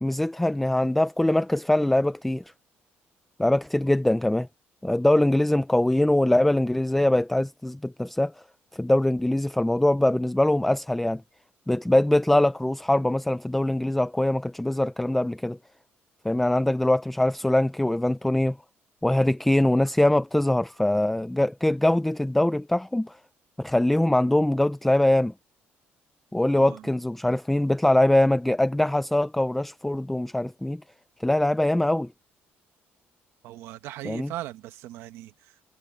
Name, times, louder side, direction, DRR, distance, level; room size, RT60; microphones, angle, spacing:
voice 1, 0.0-2.4 3.4-4.5 4.8-8.3 8.7-11.2 11.7-15.6 16.2-18.6 19.0-23.2 23.6-25.3 26.3-30.8 31.2-32.1 34.1-34.3, left 1 dB, 5° left, 0.4 m, -22 dB
voice 2, 26.5-26.9 33.4-35.6, right 14 dB, 85° right, 1.3 m, -39 dB
cardioid pair, 165°, 4 cm